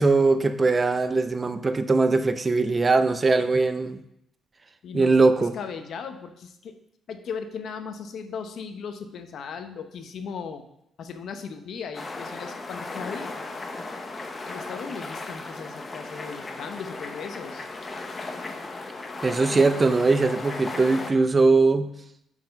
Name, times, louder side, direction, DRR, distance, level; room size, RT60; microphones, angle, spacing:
voice 1, 0.0-4.0 4.9-5.5 19.2-21.9, right 3 dB, 30° right, 11 dB, 0.5 m, -21 dB
voice 2, 4.8-5.2 5.5-6.8 7.1-10.6 11.0-13.4 14.5-17.7, left 6 dB, 65° left, 8 dB, 0.7 m, -37 dB
sound 1, 11.9-21.1, left 3 dB, 30° left, 0.8 m, -36 dB
5.7 x 4.6 x 5.2 m, 0.78 s
cardioid pair, 90°, 0 cm